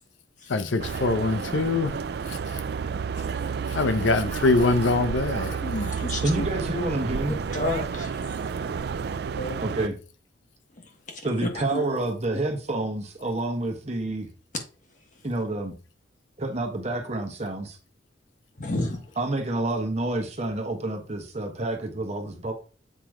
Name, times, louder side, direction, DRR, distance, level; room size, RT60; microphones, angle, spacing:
voice 1, 0.5-1.9 2.3-2.6 3.7-5.9, left 3 dB, 85° left, 0.6 m, -24 dB
sound 1, 0.8-9.9, right 6 dB, 55° right, 0.3 m, -31 dB
voice 2, 5.6-6.5 7.5-8.1 9.4-9.6 11.4-11.8 18.6-19.0, left 1 dB, 45° left, 1.4 m, -30 dB
voice 3, 6.2-7.3 9.6-10.0 11.2-14.3 15.2-15.7 16.4-17.8 19.2-22.5, right 2 dB, 35° right, 1.2 m, -28 dB
7.5 x 3.0 x 4.9 m
head